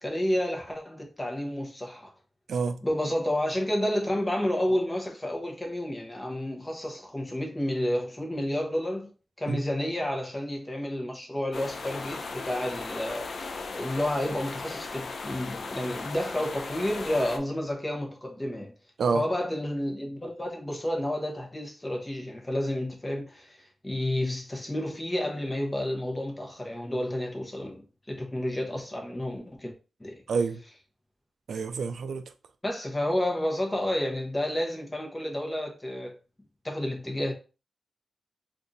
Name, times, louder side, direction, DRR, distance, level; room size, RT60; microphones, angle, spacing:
voice 1, 0.0-2.1 2.8-9.1 9.4-13.3 13.7-18.7 19.1-23.6 23.8-29.7 30.0-30.2 32.6-36.1 36.6-37.3, left 1 dB, 15° left, 0.9 m, -30 dB
sound 1, 11.5-17.4, left 4 dB, 60° left, 0.5 m, -37 dB
voice 2, 30.3-30.6 31.5-32.3, right 5 dB, 80° right, 0.3 m, -28 dB
2.7 x 2.5 x 3.9 m
wide cardioid pair, 105°, 0 cm